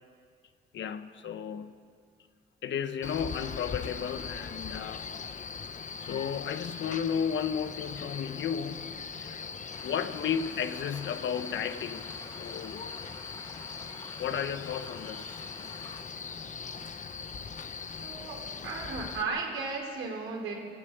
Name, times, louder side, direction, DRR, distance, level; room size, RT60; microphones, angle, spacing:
voice 1, 0.7-1.7 2.6-5.1 6.0-9.4 9.8-12.1 12.4-12.8 14.2-15.4, left 8 dB, 70° left, 9 dB, 1.3 m, -33 dB
Male speech man speaking, 3.0-19.2, left 5 dB, 40° left, 1.1 m, -40 dB
sound 1, 9.7-16.0, left 2 dB, 20° left, 2.3 m, -50 dB
voice 2, 18.0-20.5, right 4 dB, 85° right, 0 dB, 4.7 m, -35 dB
21.0 x 15.0 x 9.3 m, 2.2 s
cardioid pair, 90°, 20 cm